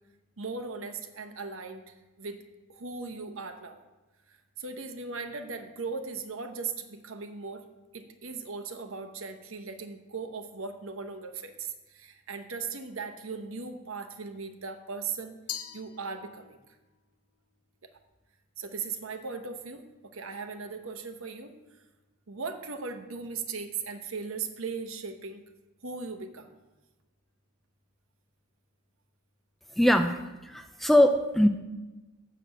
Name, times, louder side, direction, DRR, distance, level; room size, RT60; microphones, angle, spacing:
voice 1, 0.4-2.4 2.7-3.8 4.3-7.6 7.9-15.3 15.7-16.8 17.8-17.9 18.6-19.9 20.1-21.8 22.3-25.4 25.8-26.5, right 4 dB, 65° right, 7 dB, 0.9 m, -38 dB
Glass, 15.5-16.7, left 10 dB, 85° left, 0.7 m, -41 dB
voice 2, 29.8-31.5, left 1 dB, ahead, 6 dB, 0.4 m, -22 dB
6.7 x 6.7 x 7.6 m, 1.1 s
head